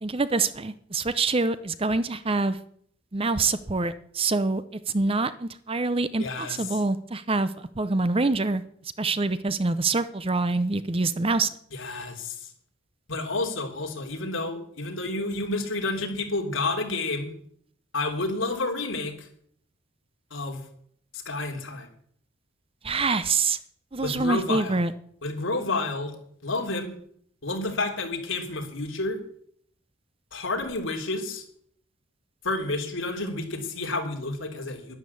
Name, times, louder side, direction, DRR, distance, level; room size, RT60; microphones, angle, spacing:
voice 1, 0.0-2.6 3.1-8.6 9.0-11.5 22.8-23.6 23.9-24.9, right 3 dB, 25° right, 13 dB, 0.7 m, -25 dB
voice 2, 6.2-6.8 11.7-12.5 13.1-17.3 17.9-19.3 20.3-20.6 21.1-21.9 24.0-24.8 25.2-26.1 26.4-26.9 27.4-29.2 30.3-31.4 32.4-35.0, left 2 dB, 65° left, 3 dB, 3.3 m, -30 dB
11.5 x 11.5 x 8.4 m, 0.64 s
head